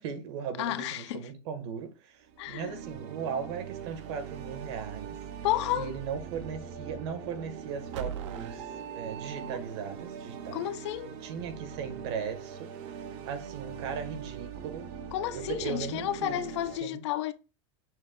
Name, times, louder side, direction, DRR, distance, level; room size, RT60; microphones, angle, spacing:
voice 1, 0.0-5.2 5.7-8.6 8.9-10.7 11.2-12.7 13.1-14.9 15.3-16.4 16.8-17.0, right 6 dB, 65° right, 1.2 m, -38 dB
voice 2, 0.6-1.3 2.4-2.8 5.4-5.9 10.5-11.2 15.1-17.3, left 13 dB, 70° left, 0.5 m, -32 dB
sound 1, 2.2-16.8, right 8 dB, 45° right, 0.6 m, -42 dB
sound 2, 4.1-13.4, left 2 dB, 5° left, 0.4 m, -57 dB
sound 3, 7.9-10.0, right 9 dB, 80° right, 0.6 m, -40 dB
6.1 x 2.2 x 3.6 m
supercardioid pair, 165°, 15 cm